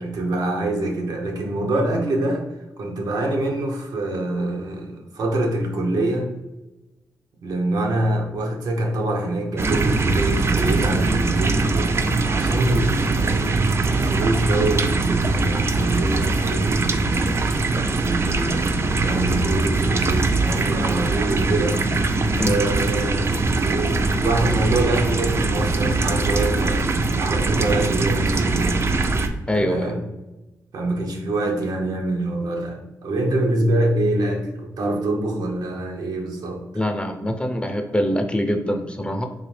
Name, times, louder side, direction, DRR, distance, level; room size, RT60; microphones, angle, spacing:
voice 1, 0.0-2.5 2.8-6.3 7.4-12.0 12.2-17.5 18.0-21.8 22.4-23.3 23.6-26.9 27.2-28.8 29.5-30.0 30.7-36.6, right 2 dB, 80° right, 2 dB, 0.8 m, -25 dB
sound 1, 9.6-29.3, right 3 dB, 40° right, 0.4 m, -21 dB
voice 2, 29.5-29.9 36.7-39.2, equal, 15° left, 5 dB, 0.5 m, -24 dB
3.8 x 2.7 x 3.2 m, 1.0 s
cardioid pair, 75°, 7 cm